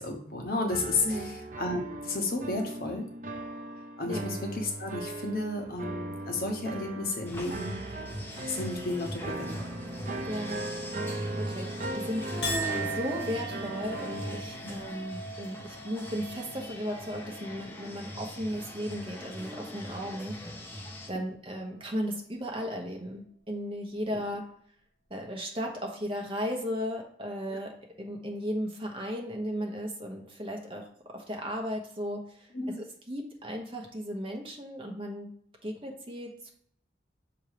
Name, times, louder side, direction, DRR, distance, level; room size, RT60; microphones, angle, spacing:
voice 1, 0.0-3.0 4.0-7.8 8.4-9.6 14.6-14.7 27.5-27.6 32.5-32.8, left 2 dB, 55° left, 2 dB, 1.1 m, -32 dB
sound 1, 0.7-14.4, right 2 dB, 45° right, 0.6 m, -38 dB
sound 2, 7.2-21.1, left 1 dB, 10° left, 0.9 m, -41 dB
voice 2, 10.2-10.6 11.4-20.7 21.1-24.4 25.1-27.7 28.0-30.8 31.1-32.5 32.8-35.3 35.6-36.5, equal, 30° right, 1 dB, 1.0 m, -35 dB
Chink clink, 12.4-19.0 19.4-19.9, right 2 dB, 80° left, 1.4 m, -40 dB
6.4 x 3.0 x 4.9 m, 0.63 s
head